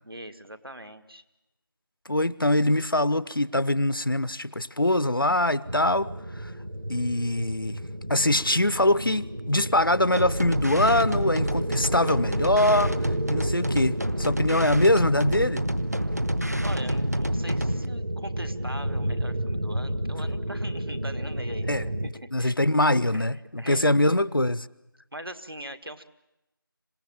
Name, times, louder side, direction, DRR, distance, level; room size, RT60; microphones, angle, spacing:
voice 1, 0.0-1.2 16.6-22.1 22.4-22.5 23.1-23.3 23.6-24.2 25.1-26.0, equal, 80° right, 1.9 m, -41 dB
voice 2, 2.1-6.5 6.9-7.8 8.1-15.7 21.6-24.7, left 1 dB, 70° left, 0.8 m, -23 dB
sound 1, 5.6-22.1, right 1 dB, 60° right, 1.8 m, -32 dB
sound 2, 10.2-17.9, equal, 45° right, 0.8 m, -28 dB
26.5 x 17.5 x 8.9 m
figure-of-eight pair, 180°, 12 cm